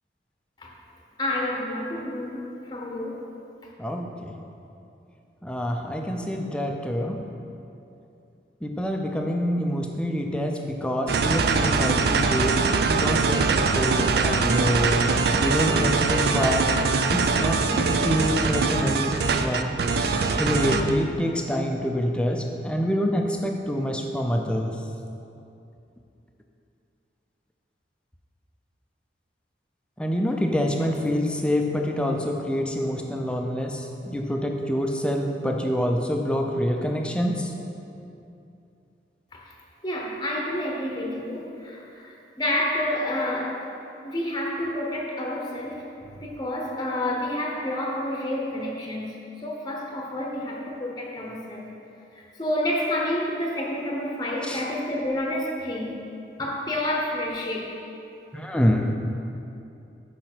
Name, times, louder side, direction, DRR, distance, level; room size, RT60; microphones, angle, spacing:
voice 1, 1.2-3.2 39.3-39.5 39.8-43.6 44.0-49.2 49.4-51.7 52.1-56.0 56.4-57.8, left 1 dB, 20° left, -1 dB, 0.8 m, -29 dB
voice 2, 3.8-4.3 5.4-7.2 8.6-15.1 15.4-16.7 17.1-24.9 30.0-37.5 54.4-54.6 58.3-58.9, equal, 5° left, 2 dB, 0.4 m, -26 dB
sound 1, 11.1-20.9, right 4 dB, 55° right, 0.4 m, -23 dB
6.6 x 5.1 x 6.0 m, 2.7 s
head